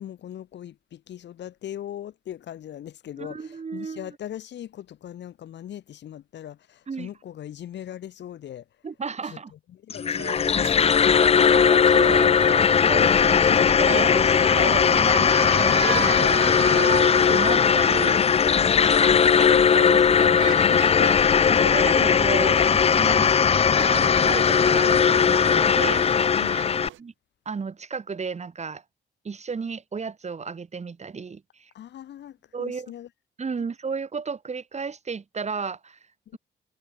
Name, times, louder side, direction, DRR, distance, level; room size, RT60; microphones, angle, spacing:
voice 1, 0.0-8.6 9.2-9.4 9.7-11.1 14.1-14.4 18.7-19.2 20.5-20.9 26.3-26.9 31.7-33.1 33.6-33.7, left 11 dB, 60° left, 1.0 m, -40 dB
voice 2, 3.2-4.2 6.9-7.1 8.8-9.5 11.5-17.0 17.3-18.2 18.8-26.5 27.0-27.1 27.5-28.8 29.2-31.7 32.5-32.9 33.4-36.0, right 5 dB, 35° right, 2.8 m, -33 dB
sound 1, 9.9-26.9, left 7 dB, 30° left, 0.5 m, -19 dB
sound 2, 10.1-27.0, right 14 dB, 80° right, 1.2 m, -36 dB
sound 3, 13.1-19.4, left 16 dB, 80° left, 0.7 m, -37 dB
cardioid pair, 90°, 20 cm